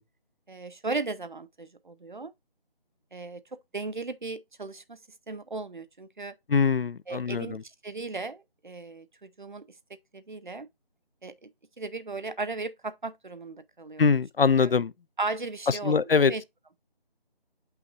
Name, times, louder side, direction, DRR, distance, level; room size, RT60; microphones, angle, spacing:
voice 1, 0.5-2.3 3.1-3.4 3.7-5.0 5.3-6.3 7.1-9.7 10.1-10.7 11.2-11.5 11.8-14.2 14.6-14.7 15.2-16.4, right 3 dB, 50° right, 0.6 m, -36 dB
voice 2, 6.5-7.6 14.0-14.9 15.8-16.3, left 5 dB, 70° left, 0.5 m, -23 dB
7.8 x 5.7 x 2.8 m
figure-of-eight pair, 180°, 30 cm